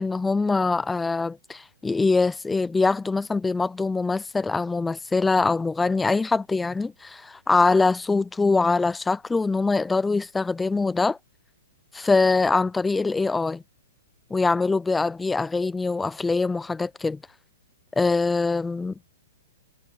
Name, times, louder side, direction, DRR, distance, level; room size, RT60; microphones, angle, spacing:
voice 1, 0.0-11.2 11.9-13.6 14.3-17.2 18.0-18.9, left 3 dB, 5° left, 0.4 m, -23 dB
hypercardioid pair, 155°, 0 cm